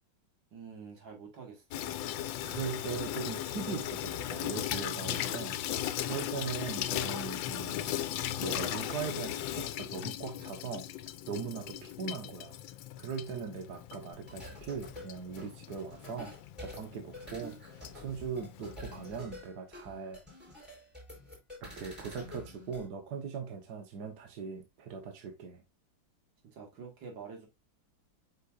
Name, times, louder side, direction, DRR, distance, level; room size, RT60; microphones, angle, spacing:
voice 1, 0.5-2.0 26.4-27.5, right 5 dB, 75° right, 2.7 m, -47 dB
Water tap faucet / Sink (filling or washing), 1.7-19.2, left 12 dB, 85° left, 1.4 m, -38 dB
voice 2, 2.2-8.0 8.4-10.9 11.3-12.6 13.0-16.3 16.6-20.2 21.6-25.6, right 6 dB, 60° right, 1.7 m, -40 dB
sound 1, 14.3-22.9, left 1 dB, ahead, 4.3 m, -48 dB
8.0 x 5.7 x 2.5 m
omnidirectional pair, 2.0 m